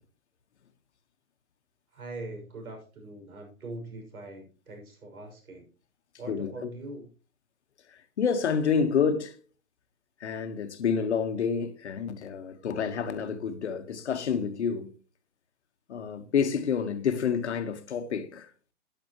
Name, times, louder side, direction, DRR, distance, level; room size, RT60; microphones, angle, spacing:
voice 1, 1.9-5.7 6.2-7.1, right 2 dB, 70° right, 6.2 m, -42 dB
voice 2, 6.3-6.7 7.9-9.4 10.2-14.9 15.9-18.5, left 6 dB, 50° left, 1.4 m, -28 dB
12.0 x 10.5 x 3.0 m
hypercardioid pair, 170°, 44 cm